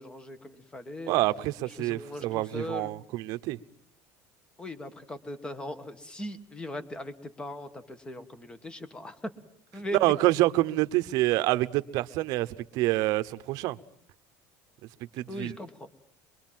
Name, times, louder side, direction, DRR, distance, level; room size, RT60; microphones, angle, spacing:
voice 1, 0.0-1.1 1.7-2.9 4.6-9.3 9.7-10.1 15.3-15.9, left 1 dB, 10° left, 12 dB, 1.5 m, -39 dB
voice 2, 1.1-3.6 10.0-12.5 12.7-13.8 15.2-15.5, right 17 dB, 55° right, 12 dB, 0.9 m, -27 dB
23.0 x 23.0 x 7.6 m, 0.64 s
cardioid pair, 155°, 7 cm